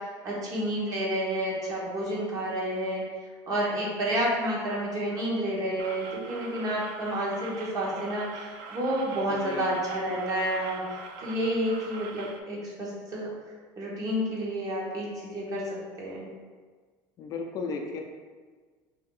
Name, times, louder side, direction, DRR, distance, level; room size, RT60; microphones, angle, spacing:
voice 1, 0.2-3.0 3.5-10.8 11.2-13.3 13.8-16.3, right 1 dB, 40° right, -5 dB, 1.1 m, -30 dB
sound 1, 5.8-12.4, right 4 dB, 60° right, 0.4 m, -43 dB
voice 2, 9.3-9.7 17.2-18.0, left 4 dB, 40° left, 2 dB, 0.4 m, -34 dB
3.0 x 2.7 x 3.7 m, 1.5 s
cardioid pair, 135°, 10 cm